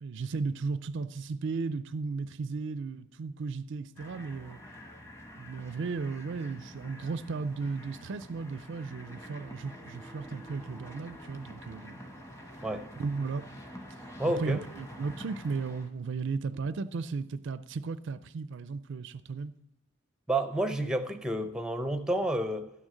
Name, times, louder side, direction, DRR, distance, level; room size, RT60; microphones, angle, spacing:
voice 1, 0.0-4.6 5.4-12.0 13.0-13.5 14.4-19.5, right 4 dB, 55° right, 0.4 m, -35 dB
sound 1, 4.0-15.9, equal, 15° left, 1.0 m, -47 dB
voice 2, 14.2-14.6 20.3-22.7, right 1 dB, 5° right, 0.5 m, -30 dB
12.0 x 6.4 x 7.4 m
head